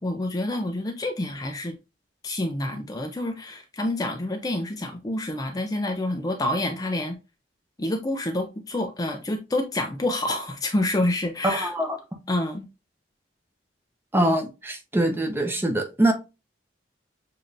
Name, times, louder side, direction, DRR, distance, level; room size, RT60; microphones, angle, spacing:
voice 1, 0.0-1.8 2.2-7.2 7.8-11.7 12.3-12.7, left 1 dB, 20° left, 0.4 m, -28 dB
voice 2, 11.4-12.0 14.1-16.1, right 1 dB, 10° right, 0.8 m, -23 dB
6.9 x 2.8 x 2.5 m
head